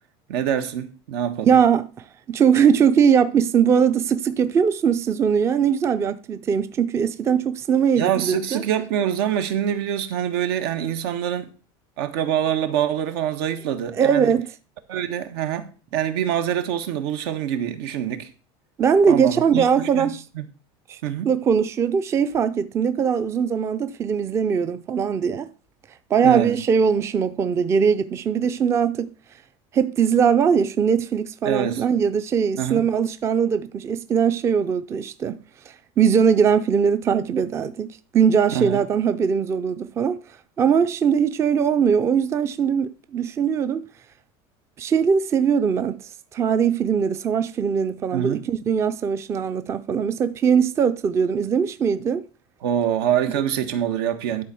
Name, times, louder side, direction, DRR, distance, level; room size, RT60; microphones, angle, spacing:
voice 1, 0.3-1.6 8.0-11.5 12.0-14.3 14.9-18.3 19.1-20.4 21.0-21.3 26.2-26.5 31.4-31.8 32.6-32.8 38.5-38.8 48.1-48.4 52.6-54.4, right 10 dB, 80° right, 1.5 m, -25 dB
voice 2, 1.4-8.6 14.0-14.5 18.8-20.2 20.9-21.0 21.2-25.5 26.1-29.1 29.7-35.4 36.0-40.2 40.6-43.8 44.8-52.2, right 7 dB, 20° right, 0.4 m, -21 dB
11.5 x 4.2 x 7.0 m
cardioid pair, 155°, 13 cm